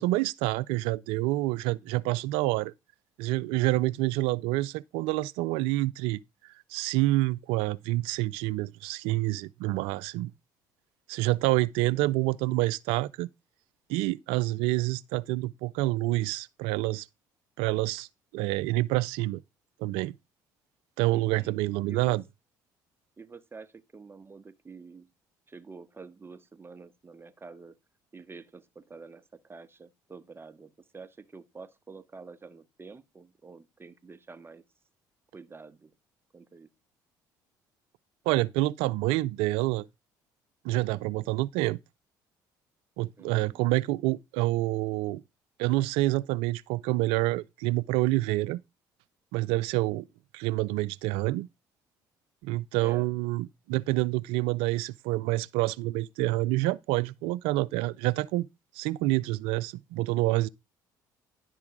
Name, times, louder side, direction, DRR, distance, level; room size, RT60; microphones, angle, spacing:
voice 1, 0.0-2.7 3.2-6.2 6.7-10.3 11.1-13.3 13.9-17.1 17.6-18.1 18.3-19.4 19.8-20.1 21.0-22.2 38.3-39.9 40.6-41.8 43.0-45.2 45.6-48.6 49.3-50.0 50.3-51.5 52.4-58.5 58.8-60.5, right 18 dB, 75° right, 0.4 m, -27 dB
voice 2, 11.8-12.1 21.1-21.5 21.9-22.2 23.2-25.1 25.5-27.7 28.1-34.6 35.3-35.9 36.3-36.7 43.2-43.6 52.8-53.1, right 4 dB, 25° right, 1.1 m, -48 dB
10.5 x 3.7 x 6.0 m
hypercardioid pair, 60°, 10 cm